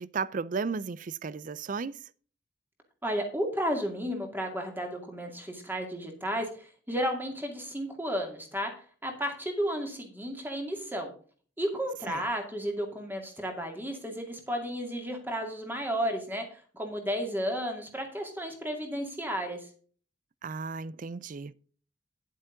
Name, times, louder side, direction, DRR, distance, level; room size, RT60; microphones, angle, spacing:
voice 1, 0.0-2.0 12.1-12.2 20.4-21.5, right 5 dB, 45° right, 0.4 m, -34 dB
voice 2, 3.0-8.7 9.0-11.1 11.6-19.6, equal, 10° right, 2.3 m, -33 dB
10.0 x 8.2 x 3.8 m
head